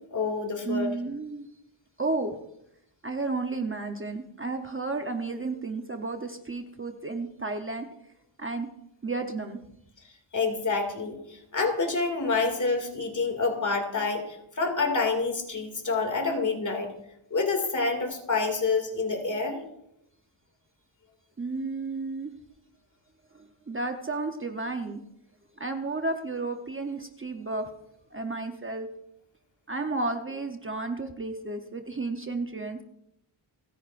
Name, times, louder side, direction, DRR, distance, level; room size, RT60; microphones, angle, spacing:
voice 1, 0.1-0.9 10.3-16.9 17.3-19.6, left 4 dB, 35° left, 3 dB, 2.5 m, -27 dB
voice 2, 0.7-1.5 2.0-2.4 3.0-7.9 8.4-8.7 9.0-9.6 21.4-22.3 23.3-25.0 25.6-27.7 28.1-28.9 29.7-32.8, right 3 dB, 25° right, 5 dB, 0.8 m, -32 dB
30.0 x 10.5 x 2.5 m, 0.81 s
wide cardioid pair, 150°, 49 cm